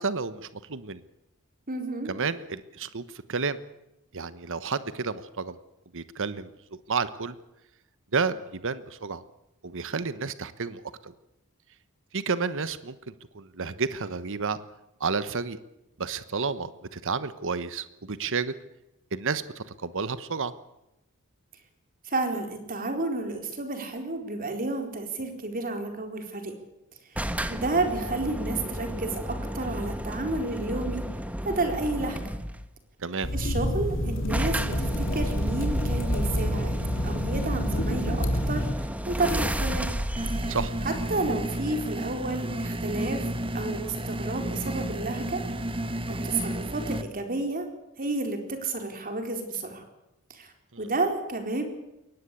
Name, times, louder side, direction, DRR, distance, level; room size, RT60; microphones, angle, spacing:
voice 1, 0.0-1.0 2.1-3.0 3.3-3.6 4.1-5.6 5.9-6.5 6.9-7.4 8.1-9.2 9.6-11.1 12.1-13.0 13.3-14.6 15.0-15.6 16.0-18.5 19.1-20.5 33.0-33.3 40.5-40.7 50.7-50.8, right 5 dB, 60° right, 14 dB, 1.1 m, -31 dB
voice 2, 1.7-2.1 22.0-26.6 27.5-31.0 31.4-32.2 33.3-36.8 37.0-39.9 40.8-43.3 43.5-45.4 46.1-47.7 48.0-49.8 50.3-51.6, right 2 dB, 40° right, 5 dB, 4.2 m, -31 dB
sound 1, 27.2-32.7 33.7-33.8 33.9-34.0 34.3-41.8, equal, 5° right, 1.3 m, -33 dB
sound 2, 33.2-38.8, equal, 60° left, 3.5 m, -28 dB
sound 3, 40.2-47.0, right 1 dB, 25° right, 1.4 m, -32 dB
22.0 x 19.0 x 8.4 m, 0.90 s
head